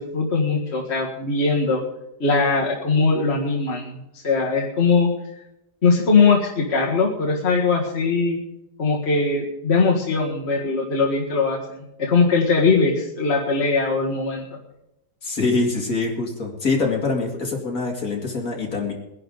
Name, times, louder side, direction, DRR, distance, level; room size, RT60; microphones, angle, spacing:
voice 1, 0.0-1.8 2.2-5.1 5.8-8.4 8.8-14.4, left 4 dB, 40° left, -2 dB, 1.9 m, -20 dB
voice 2, 15.2-18.9, left 3 dB, 55° left, 0 dB, 2.8 m, -24 dB
21.0 x 11.0 x 4.0 m, 0.88 s
omnidirectional pair, 1.8 m